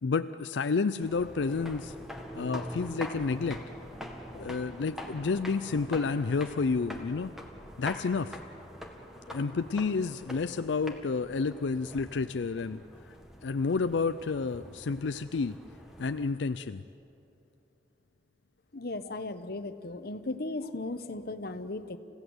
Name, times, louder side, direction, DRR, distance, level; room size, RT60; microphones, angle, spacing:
voice 1, 0.0-1.9 2.3-3.6 4.3-7.3 7.8-8.4 9.3-12.8 13.1-13.2 13.4-15.5 16.0-16.8, left 4 dB, 90° left, 10 dB, 0.5 m, -30 dB
sound 1, 1.0-16.3, equal, ahead, 2.0 m, -44 dB
voice 2, 18.7-22.0, left 2 dB, 60° left, 10 dB, 1.1 m, -36 dB
29.5 x 16.0 x 7.9 m, 2.8 s
head